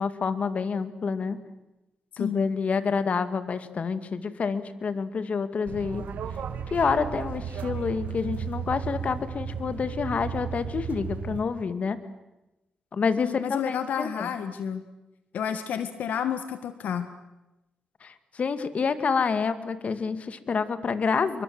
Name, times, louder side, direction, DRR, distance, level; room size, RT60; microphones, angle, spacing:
voice 1, 0.0-1.4 2.2-6.0 6.7-12.0 12.9-14.3 18.0-21.4, left 5 dB, 55° left, 12 dB, 2.3 m, -28 dB
voice 2, 2.1-2.5 13.2-14.8 15.3-17.1, left 8 dB, 80° left, 10 dB, 1.6 m, -30 dB
sound 1, 5.7-11.4, right 7 dB, 80° right, 2.7 m, -34 dB
29.0 x 24.0 x 7.9 m, 1.0 s
cardioid pair, 70°, 3 cm